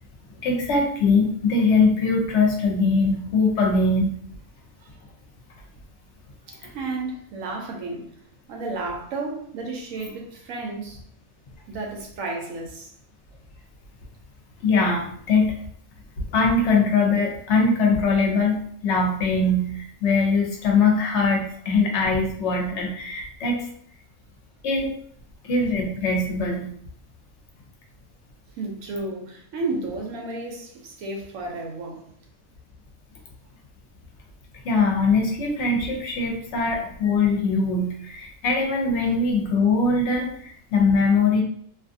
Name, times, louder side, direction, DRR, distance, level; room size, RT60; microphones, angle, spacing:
voice 1, 0.4-4.1 14.6-15.5 16.3-18.6 18.8-23.6 24.6-24.9 25.4-26.7 34.6-41.4, left 3 dB, 65° left, 0 dB, 0.9 m, -21 dB
voice 2, 6.5-8.1 8.5-11.0 11.7-12.9 28.6-32.0 39.0-39.1, right 3 dB, 85° right, 1 dB, 1.0 m, -32 dB
2.5 x 2.4 x 2.5 m, 0.64 s
omnidirectional pair, 1.4 m